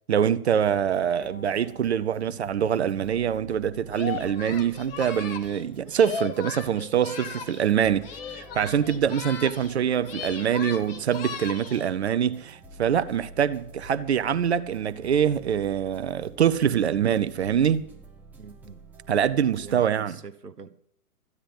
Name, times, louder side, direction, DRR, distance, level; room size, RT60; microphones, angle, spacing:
voice 1, 0.1-17.9 19.1-20.2, right 8 dB, 45° right, 0.7 m, -24 dB
sound 1, 0.6-19.8, right 1 dB, 5° right, 0.9 m, -49 dB
Bowed string instrument, 1.2-4.5, left 3 dB, 65° left, 6.6 m, -54 dB
Singing, 3.9-7.7 8.0-9.8 10.0-11.9, left 6 dB, 35° left, 1.8 m, -37 dB
voice 2, 18.4-18.8 19.6-20.8, right 5 dB, 85° right, 1.1 m, -43 dB
14.5 x 10.0 x 7.3 m
figure-of-eight pair, 120°, 46 cm